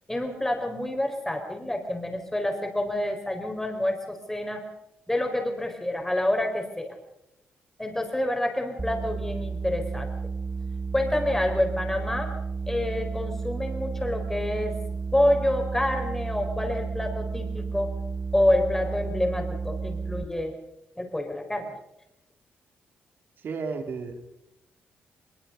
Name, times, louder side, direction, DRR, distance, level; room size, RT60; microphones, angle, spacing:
voice 1, 0.1-4.6 5.1-7.0 7.8-10.1 10.9-12.3 12.7-14.7 15.1-17.9 18.3-20.5 21.0-21.7, left 1 dB, 10° left, 4 dB, 4.5 m, -27 dB
sound 1, 8.8-20.2, right 4 dB, 15° right, 1.5 m, -32 dB
voice 2, 23.4-24.2, right 4 dB, 60° right, 5 dB, 3.5 m, -33 dB
22.5 x 22.5 x 5.3 m, 0.84 s
cardioid pair, 115°, 4 cm